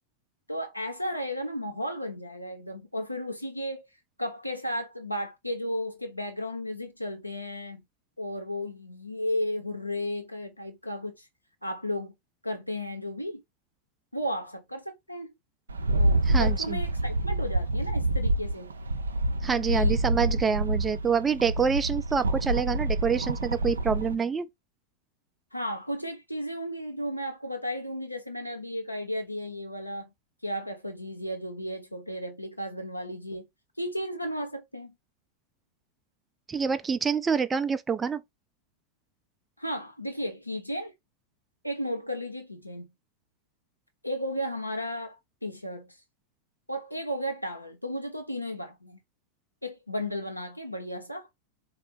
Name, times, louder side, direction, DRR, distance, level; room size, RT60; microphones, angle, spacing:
voice 1, 0.5-3.8 4.2-7.8 8.2-11.2 11.6-12.1 12.4-13.4 14.1-15.3 16.0-18.8 19.7-20.0 25.5-30.1 30.4-33.5 33.8-34.9 39.6-40.9 41.6-42.9 44.0-46.0 46.7-49.0 49.6-51.3, equal, 90° left, 1.0 m, -34 dB
Rattle, 15.7-24.1, right 1 dB, 75° right, 0.5 m, -27 dB
voice 2, 16.3-16.8 19.4-24.5 36.5-38.2, right 6 dB, 15° right, 0.4 m, -27 dB
4.2 x 2.4 x 4.4 m
figure-of-eight pair, 90°, 0 cm